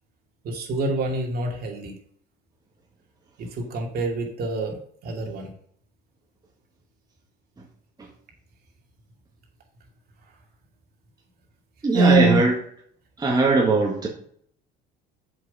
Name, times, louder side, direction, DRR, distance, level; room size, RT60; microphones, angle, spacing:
voice 1, 0.4-1.9 3.4-5.5 11.9-12.4, right 2 dB, 50° right, 1 dB, 2.5 m, -24 dB
voice 2, 11.8-12.5 13.2-14.1, right 3 dB, 20° right, -1 dB, 1.7 m, -20 dB
7.7 x 5.8 x 5.5 m, 0.62 s
cardioid pair, 115°, 20 cm